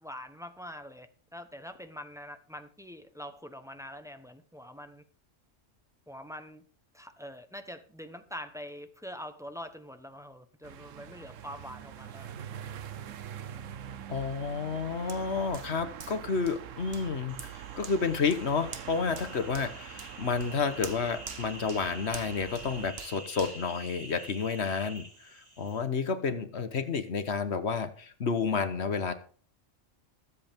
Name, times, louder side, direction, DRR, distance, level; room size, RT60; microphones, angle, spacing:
voice 1, 0.0-5.0 6.1-6.6 6.9-12.4 19.2-19.3, equal, 5° right, 8 dB, 0.9 m, -44 dB
sound 1, 10.6-22.9, right 9 dB, 80° right, 1.1 m, -44 dB
voice 2, 14.1-17.4 17.7-25.0 25.6-29.1, left 5 dB, 60° left, 11 dB, 1.3 m, -30 dB
Hands, 15.1-24.6 25.1-25.2, right 5 dB, 55° right, 1.4 m, -48 dB
sound 2, 17.3-25.8, right 1 dB, 30° right, 3.9 m, -48 dB
21.5 x 8.0 x 3.6 m, 0.43 s
omnidirectional pair, 1.3 m